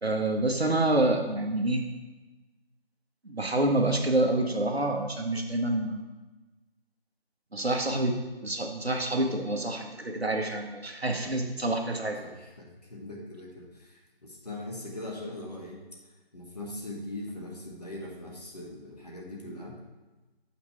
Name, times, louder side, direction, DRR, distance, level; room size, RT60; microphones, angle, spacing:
voice 1, 0.0-1.8 3.2-6.1 7.5-12.2, right 2 dB, 80° right, 3 dB, 1.2 m, -27 dB
voice 2, 12.2-15.8 16.3-19.8, left 1 dB, 40° left, -2 dB, 1.5 m, -41 dB
6.9 x 5.9 x 4.4 m, 1.2 s
figure-of-eight pair, 165°, 31 cm